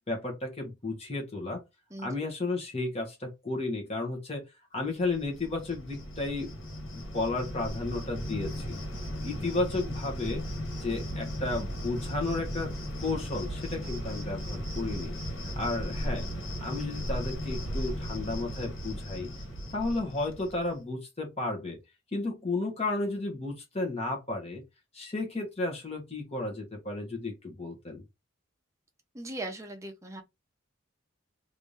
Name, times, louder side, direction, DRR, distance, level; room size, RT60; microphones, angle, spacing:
voice 1, 0.1-1.6 2.0-4.5 4.7-6.5 7.1-8.8 9.2-10.4 10.8-12.7 13.0-15.1 15.6-16.2 16.6-19.3 19.7-21.8 22.1-24.6 24.9-28.0, left 2 dB, 30° left, 1.3 m, -33 dB
Cricket, 5.0-20.7, equal, 70° left, 1.8 m, -36 dB
voice 2, 29.1-30.2, right 2 dB, 15° right, 0.8 m, -38 dB
3.3 x 2.7 x 3.2 m
head